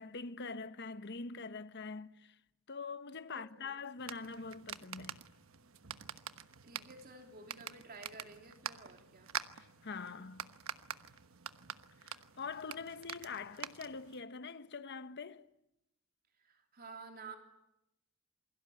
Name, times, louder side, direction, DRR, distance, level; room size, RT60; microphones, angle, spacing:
voice 1, 0.0-2.4 2.7-5.3 9.8-10.5 12.0-15.5, left 4 dB, 55° left, 1.1 m, -44 dB
voice 2, 3.3-3.7 6.6-9.3 16.4-17.4, right 3 dB, 45° right, 3.4 m, -52 dB
sound 1, 4.0-14.2, right 8 dB, 90° right, 1.2 m, -46 dB
28.0 x 22.5 x 9.2 m
head